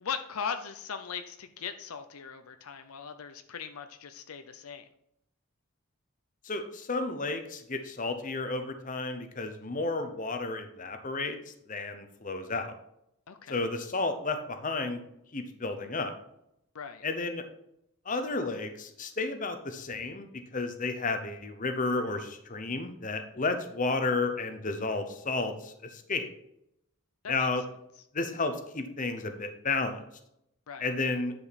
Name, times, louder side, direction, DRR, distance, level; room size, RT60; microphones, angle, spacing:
voice 1, 0.0-4.9 13.3-13.6 16.7-17.0 27.2-27.5 30.7-30.9, left 6 dB, 75° left, 9 dB, 0.6 m, -39 dB
voice 2, 6.4-12.7 13.5-15.0 15.3-16.1 17.0-17.4 18.0-26.3 27.3-27.6 28.1-30.0 30.8-31.3, left 3 dB, 35° left, 7 dB, 0.9 m, -32 dB
10.0 x 5.1 x 4.2 m, 0.77 s
head